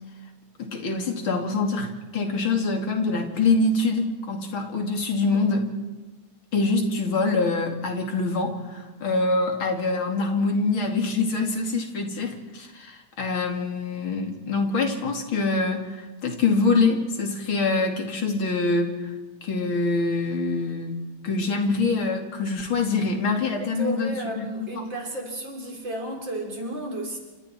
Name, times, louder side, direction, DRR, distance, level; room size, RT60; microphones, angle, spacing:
voice 1, 0.6-5.7 6.5-19.1 19.4-20.9 21.2-24.8, left 3 dB, 85° left, 3 dB, 3.5 m, -25 dB
voice 2, 23.6-27.2, right 1 dB, 65° right, 1 dB, 5.0 m, -32 dB
28.5 x 26.5 x 4.5 m, 1.2 s
omnidirectional pair, 2.2 m